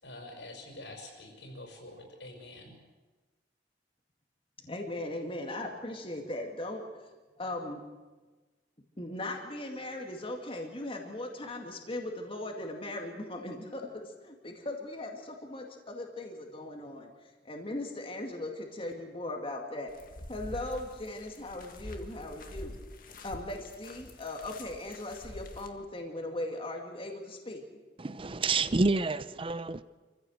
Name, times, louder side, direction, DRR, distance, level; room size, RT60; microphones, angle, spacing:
voice 1, 0.0-2.7, left 1 dB, 80° left, 2 dB, 6.1 m, -46 dB
voice 2, 4.6-7.1 7.4-7.8 9.0-17.1 17.4-19.9 20.3-22.8 23.2-27.6, left 1 dB, 30° left, 2 dB, 2.3 m, -38 dB
sound 1, 19.9-25.7, left 1 dB, 50° left, 1.9 m, -46 dB
voice 3, 28.0-29.8, right 3 dB, 30° right, 15 dB, 0.6 m, -28 dB
26.5 x 15.0 x 8.0 m, 1.3 s
head